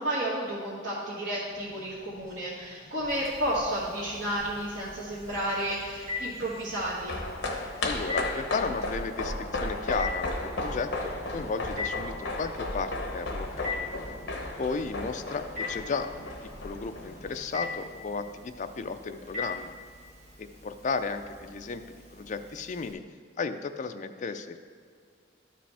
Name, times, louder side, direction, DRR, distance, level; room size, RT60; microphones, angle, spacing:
voice 1, 0.0-7.2, right 1 dB, 80° right, -9 dB, 1.5 m, -32 dB
sound 1, 1.4-17.8, left 1 dB, 5° left, 2.2 m, -51 dB
Telephone, 3.1-22.9, left 4 dB, 40° right, 1.7 m, -42 dB
sound 2, 6.7-17.3 17.6-17.7, left 2 dB, 65° left, 1.0 m, -35 dB
voice 2, 7.8-13.9 14.6-16.3 16.6-19.7 20.4-23.0 23.4-24.6, left 4 dB, 40° left, 8 dB, 0.4 m, -34 dB
12.5 x 5.1 x 3.4 m, 2.2 s
head